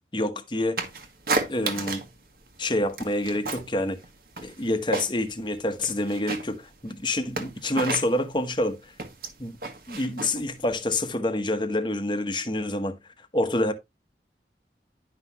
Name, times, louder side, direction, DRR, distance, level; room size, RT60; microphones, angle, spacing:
voice 1, 0.1-0.8 1.5-2.0 2.6-4.0 4.4-8.9 9.4-9.5 9.9-13.0 13.3-13.7, left 1 dB, 25° left, 1.0 m, -27 dB
sound 1, 0.8-2.2 2.5-3.7 4.0-5.4 5.7-11.1, right 3 dB, 55° right, 1.5 m, -32 dB
10.5 x 5.7 x 2.8 m
head